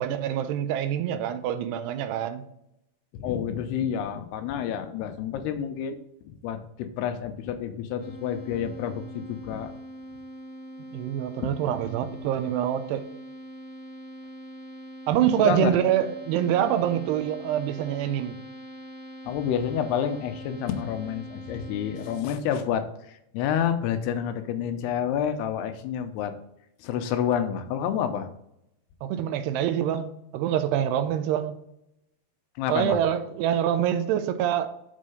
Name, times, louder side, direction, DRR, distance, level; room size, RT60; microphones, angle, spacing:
voice 1, 0.0-2.4 10.9-13.1 15.1-18.4 29.0-31.6 32.7-34.7, right 10 dB, 85° right, 2.7 m, -25 dB
voice 2, 3.1-6.0 6.4-9.7 11.4-11.5 15.4-15.8 19.3-26.3 26.8-28.3 32.6-33.0, left 8 dB, 90° left, 2.7 m, -29 dB
sound 1, 8.0-22.2, equal, 55° right, 1.3 m, -43 dB
7.6 x 5.4 x 4.9 m
omnidirectional pair, 4.8 m